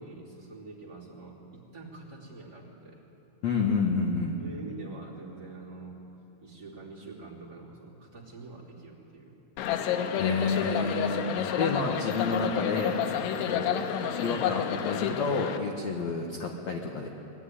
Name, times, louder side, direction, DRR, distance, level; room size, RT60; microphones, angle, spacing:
voice 1, 0.0-3.0 4.4-6.0 6.4-9.3 12.3-12.8, right 3 dB, 25° right, -3 dB, 2.9 m, -45 dB
voice 2, 3.4-4.4 10.2-11.3 11.6-13.0 13.5-13.8 14.2-17.1, left 4 dB, 65° left, 1 dB, 1.7 m, -29 dB
sound 1, 9.6-15.6, left 9 dB, 90° left, 3.0 m, -30 dB
22.0 x 13.0 x 9.9 m, 3.0 s
omnidirectional pair, 4.8 m